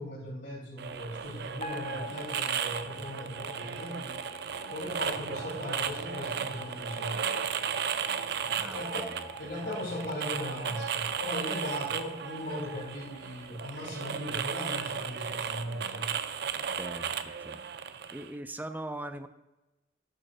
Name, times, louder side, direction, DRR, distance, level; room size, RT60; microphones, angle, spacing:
voice 1, 0.0-4.2 4.7-7.2 8.4-9.1 9.4-16.1, equal, 85° left, -8 dB, 3.2 m, -38 dB
sound 1, 0.8-18.3, right 7 dB, 65° right, 0.5 m, -35 dB
sound 2, 1.6-13.9, left 1 dB, 35° left, 0.9 m, -47 dB
voice 2, 8.5-9.5 16.7-17.6 18.1-19.3, right 1 dB, 10° right, 9 dB, 0.5 m, -41 dB
10.5 x 3.7 x 6.6 m, 1.0 s
head